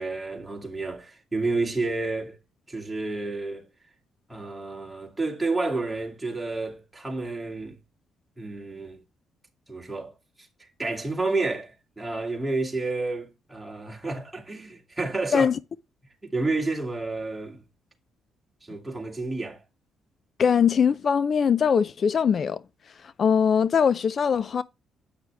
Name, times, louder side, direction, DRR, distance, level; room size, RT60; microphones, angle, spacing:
voice 1, 0.0-2.4 2.7-3.7 4.3-7.8 8.4-9.0 9.7-10.1 10.4-10.5 10.8-15.5 16.2-17.6 18.6-19.6, right 3 dB, 10° right, 2.5 m, -30 dB
voice 2, 20.4-22.6 23.2-24.6, left 7 dB, 50° left, 0.4 m, -21 dB
8.9 x 6.1 x 3.4 m
cardioid pair, 90°, 0 cm